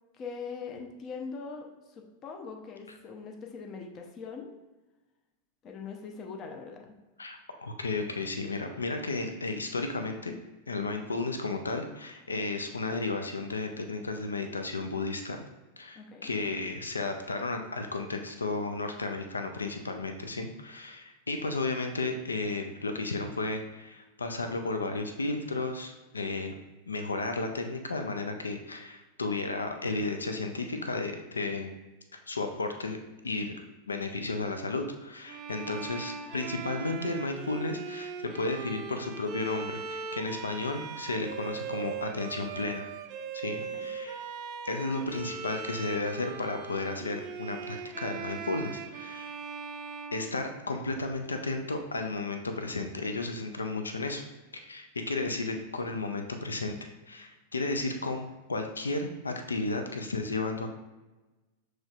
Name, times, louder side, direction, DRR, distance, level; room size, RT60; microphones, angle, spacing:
voice 1, 0.1-4.5 5.6-7.0 16.0-16.3 43.7-43.9, left 5 dB, 35° left, 2 dB, 0.6 m, -42 dB
voice 2, 7.2-10.4 10.7-15.4 15.8-26.5 26.9-31.7 32.3-33.0 33.2-42.9 43.3-44.2 44.6-49.3 50.1-54.2 54.5-60.7, left 3 dB, 85° left, 5 dB, 0.4 m, -33 dB
Bowed string instrument, 35.3-51.0, right 6 dB, 40° right, 0.4 m, -40 dB
6.2 x 3.1 x 2.4 m, 1.1 s
figure-of-eight pair, 95°, 0 cm